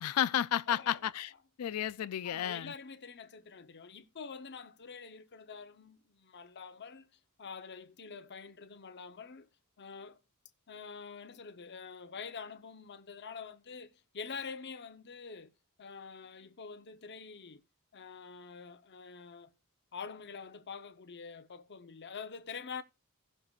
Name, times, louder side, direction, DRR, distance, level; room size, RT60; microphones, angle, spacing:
voice 1, 0.0-1.3 1.6-2.7, left 10 dB, 80° left, 0.4 m, -32 dB
voice 2, 0.7-1.0 2.2-7.1 7.4-9.5 9.8-10.2 10.7-15.5 15.8-17.6 17.9-19.5 19.9-22.8, left 5 dB, 50° left, 0.9 m, -46 dB
17.0 x 6.7 x 2.4 m
head